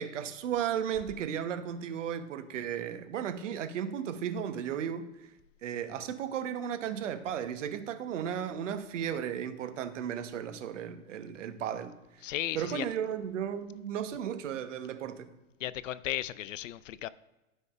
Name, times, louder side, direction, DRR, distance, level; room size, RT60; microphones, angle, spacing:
voice 1, 0.0-5.1 5.6-12.2 12.5-15.3, right 9 dB, 60° right, 10 dB, 1.0 m, -35 dB
voice 2, 12.2-12.9 15.6-17.1, left 13 dB, 65° left, 18 dB, 0.5 m, -35 dB
13.0 x 5.4 x 2.4 m, 1.0 s
hypercardioid pair, 110°, 41 cm